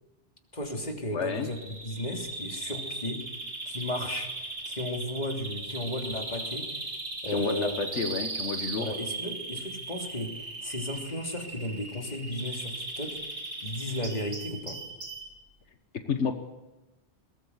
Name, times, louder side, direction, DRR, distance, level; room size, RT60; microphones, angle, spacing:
voice 1, 0.5-3.2 3.6-4.3 4.6-6.7 7.2-7.9 8.8-13.2 13.6-14.8, left 1 dB, 40° left, 2 dB, 3.3 m, -34 dB
voice 2, 1.1-1.5 7.3-8.9 16.1-16.3, left 5 dB, 85° left, 7 dB, 1.6 m, -30 dB
Bird vocalization bird call bird song, 1.3-15.3, right 2 dB, 75° right, 3.3 m, -38 dB
21.5 x 19.0 x 8.2 m, 1.1 s
omnidirectional pair, 1.2 m